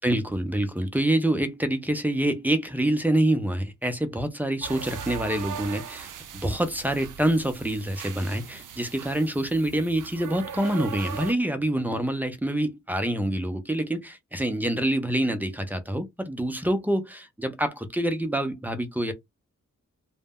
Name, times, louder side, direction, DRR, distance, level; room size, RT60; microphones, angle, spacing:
voice 1, 0.0-6.1 6.3-19.1, right 1 dB, 5° right, 0.4 m, -26 dB
sound 1, 4.6-11.3, right 8 dB, 80° right, 0.5 m, -39 dB
2.1 x 2.0 x 3.4 m
wide cardioid pair, 135°, 31 cm